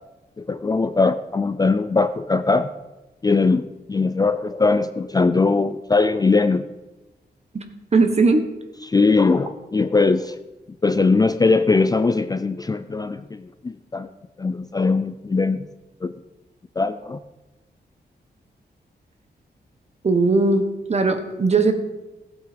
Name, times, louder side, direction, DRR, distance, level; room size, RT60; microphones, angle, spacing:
voice 1, 0.4-2.7 3.2-6.7 8.8-10.4 10.8-14.1 14.4-15.7 16.0-16.1 16.8-17.2, left 3 dB, 20° left, 11 dB, 0.4 m, -20 dB
voice 2, 7.9-8.4 20.0-20.6 20.9-21.7, right 3 dB, 40° right, 7 dB, 1.3 m, -18 dB
15.5 x 8.0 x 5.2 m, 1.1 s
wide cardioid pair, 140°, 18 cm